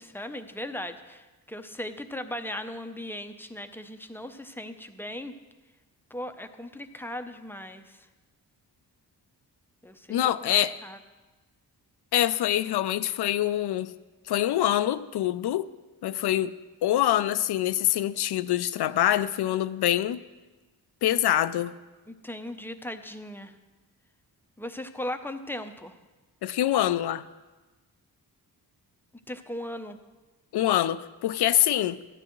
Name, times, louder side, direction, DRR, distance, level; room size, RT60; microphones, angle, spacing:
voice 1, 0.0-5.3 6.1-8.0 9.8-10.1 10.4-10.5 10.8-11.0 22.1-23.5 24.6-25.9 29.3-30.0, left 1 dB, 5° left, 0.6 m, -38 dB
voice 2, 10.1-10.8 12.1-13.9 14.3-15.7 16.0-16.6 16.8-20.2 21.0-21.7 26.4-27.2 30.5-32.0, left 12 dB, 75° left, 0.5 m, -25 dB
13.5 x 10.0 x 3.1 m
cardioid pair, 80°, 39 cm